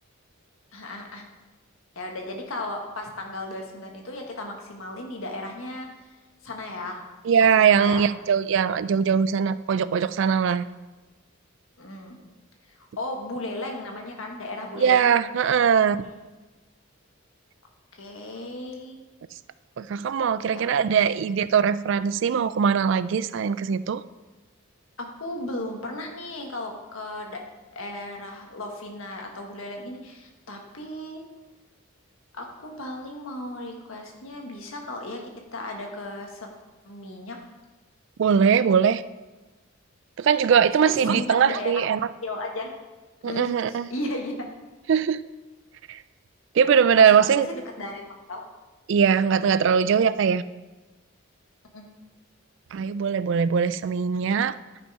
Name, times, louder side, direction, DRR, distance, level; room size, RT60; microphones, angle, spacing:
voice 1, 0.7-1.2 1.9-5.9 6.4-7.0 7.6-8.1 11.8-12.2 13.0-15.1 16.0-16.1 17.9-19.0 20.5-20.7 21.0-21.1 25.0-27.4 27.7-31.2 32.3-35.2 35.5-36.5 36.8-37.4 40.8-41.8 42.2-42.7 43.2-44.5 47.0-48.0 48.3-48.5 51.7-51.8, left 1 dB, 75° left, 2 dB, 1.5 m, -35 dB
voice 2, 7.2-10.6 14.8-16.0 19.8-24.0 38.2-39.0 40.2-42.0 43.2-43.9 44.9-45.2 45.9-46.0 46.5-47.5 48.9-50.4 52.7-54.6, right 7 dB, 60° right, 15 dB, 0.3 m, -21 dB
11.0 x 5.4 x 4.8 m, 1.2 s
head